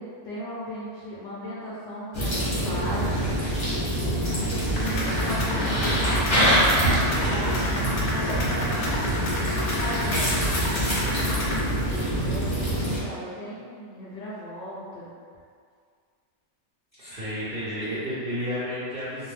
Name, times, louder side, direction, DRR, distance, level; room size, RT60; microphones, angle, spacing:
voice 1, 0.0-3.2 4.8-9.2 9.8-11.6 12.2-15.1, equal, 65° left, -8 dB, 0.8 m, -37 dB
sound 1, 2.1-13.0, right 1 dB, 35° left, 0.5 m, -25 dB
voice 2, 3.9-4.4 17.0-19.3, equal, 55° right, -12 dB, 0.6 m, -32 dB
sound 2, 4.8-11.6, left 1 dB, 85° left, 1.1 m, -31 dB
2.5 x 2.1 x 3.2 m, 2.1 s
omnidirectional pair, 1.6 m